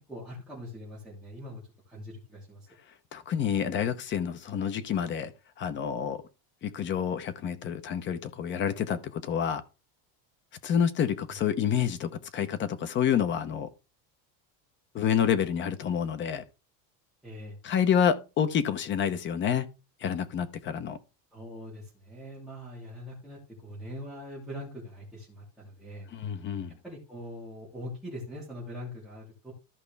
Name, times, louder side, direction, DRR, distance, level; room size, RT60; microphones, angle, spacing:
voice 1, 0.1-2.7 17.2-17.6 21.3-26.1 26.8-29.5, equal, ahead, 3.0 m, -42 dB
voice 2, 3.1-5.3 5.6-6.2 6.6-9.6 10.6-13.7 14.9-16.4 17.6-19.7 20.0-21.0 26.1-26.8, left 8 dB, 30° left, 0.9 m, -28 dB
14.0 x 5.2 x 3.4 m
cardioid pair, 175°, 41 cm